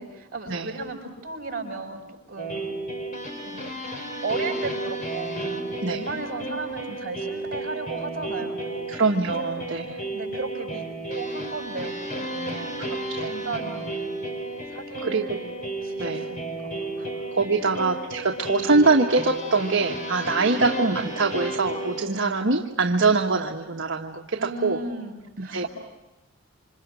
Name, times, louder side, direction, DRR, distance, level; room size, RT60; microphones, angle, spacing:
voice 1, 0.0-2.6 3.4-3.7 4.2-9.0 9.6-9.7 10.1-12.8 13.3-14.0 14.7-15.4 15.8-17.2 17.6-17.8 20.4-20.6 24.4-25.7, right 3 dB, 45° right, 3 dB, 6.3 m, -35 dB
sound 1, 2.4-22.0, right 2 dB, 40° left, 4.4 m, -33 dB
voice 2, 8.9-10.0 13.1-13.3 15.0-15.2 16.0-16.3 17.3-24.8 25.5-25.7, right 3 dB, 60° right, 2 dB, 1.5 m, -23 dB
28.0 x 26.5 x 6.3 m, 1.1 s
head